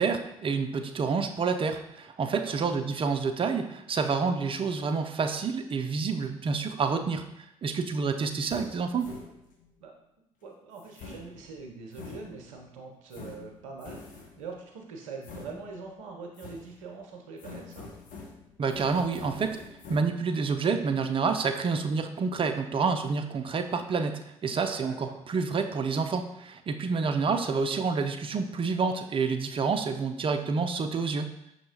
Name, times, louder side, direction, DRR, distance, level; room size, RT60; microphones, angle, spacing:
voice 1, 0.0-7.3 7.6-9.1 18.6-19.6 19.9-31.3, right 5 dB, 30° right, 6 dB, 0.4 m, -28 dB
voice 2, 2.3-2.7 9.8-9.9 10.4-17.9 24.8-25.2, right 4 dB, 80° right, 2 dB, 0.6 m, -43 dB
sound 1, 8.2-9.7 10.7-12.7 13.1-14.5 15.2-16.0 16.4-17.0 17.4-20.0, left 4 dB, 55° left, 0.7 m, -46 dB
5.5 x 2.9 x 2.7 m, 0.80 s
figure-of-eight pair, 45°, 17 cm